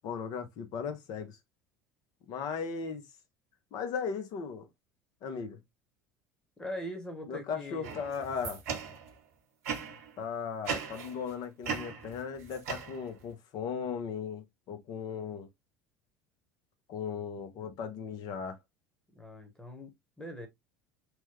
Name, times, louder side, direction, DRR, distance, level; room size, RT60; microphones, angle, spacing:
voice 1, 0.0-1.4 2.3-3.0 3.7-4.7 5.2-5.6 7.3-8.6 10.2-15.5 16.9-18.6, left 6 dB, 50° left, 0.7 m, -37 dB
voice 2, 6.6-8.0 19.1-20.5, equal, 10° left, 1.2 m, -42 dB
sound 1, 7.8-9.2 9.6-10.1 10.7-11.3 11.6-13.3, right 6 dB, 70° right, 0.9 m, -38 dB
3.1 x 2.2 x 3.0 m
hypercardioid pair, 70°, 8 cm